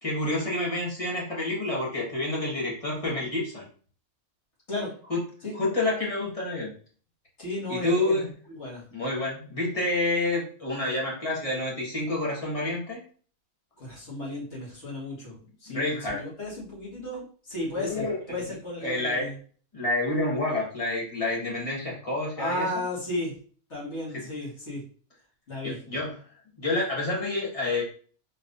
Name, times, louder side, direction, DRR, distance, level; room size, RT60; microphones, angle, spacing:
voice 1, 0.0-3.6 5.1-5.2 5.5-6.7 7.7-8.3 8.9-13.0 15.7-16.2 17.8-18.2 18.8-19.3 19.7-22.8 25.6-26.2 26.6-27.8, left 2 dB, 25° left, -4 dB, 1.5 m, -28 dB
voice 2, 7.4-8.8 13.8-19.3 22.4-23.4 23.7-24.8 25.5-25.8, left 1 dB, 50° left, -5 dB, 2.2 m, -34 dB
4.5 x 3.4 x 2.6 m, 0.43 s
omnidirectional pair, 1.5 m